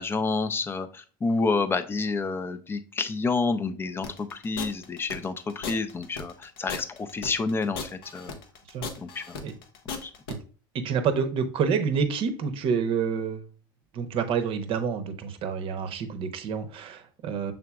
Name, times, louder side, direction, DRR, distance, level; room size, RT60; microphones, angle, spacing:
voice 1, 0.0-8.3 9.0-9.4 10.0-10.1, left 4 dB, 20° left, 9 dB, 0.5 m, -29 dB
sound 1, 4.0-10.3, left 5 dB, 85° left, 0.7 m, -37 dB
voice 2, 10.7-13.5 13.9-17.5, right 6 dB, 50° right, 8 dB, 0.7 m, -28 dB
5.8 x 3.7 x 2.3 m, 0.39 s
hypercardioid pair, 95°, 12 cm